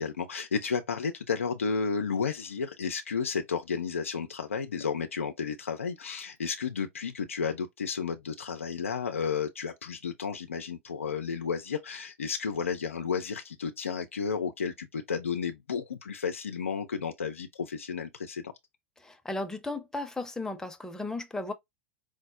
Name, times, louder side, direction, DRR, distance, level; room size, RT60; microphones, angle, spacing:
voice 1, 0.0-18.5, left 6 dB, 85° left, 0.5 m, -32 dB
voice 2, 19.0-21.5, left 2 dB, 10° left, 0.8 m, -35 dB
4.9 x 2.0 x 2.5 m
hypercardioid pair, 90°, 7 cm